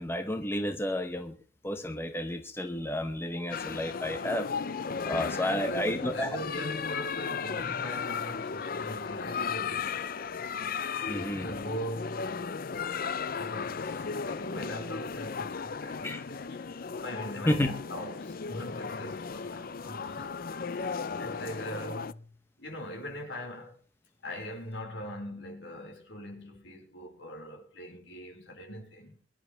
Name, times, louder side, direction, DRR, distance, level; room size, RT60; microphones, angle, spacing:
voice 1, 0.0-1.3 1.6-4.5 5.0-6.3 11.1-11.5 16.0-16.2 17.5-17.7, left 1 dB, 15° left, 0.9 m, -31 dB
sound 1, 3.5-22.1, left 5 dB, 50° left, 0.5 m, -35 dB
voice 2, 5.0-10.3 11.4-12.3 13.4-20.4 20.7-23.8 24.2-29.2, equal, 70° left, 5.1 m, -41 dB
23.0 x 11.0 x 3.4 m
head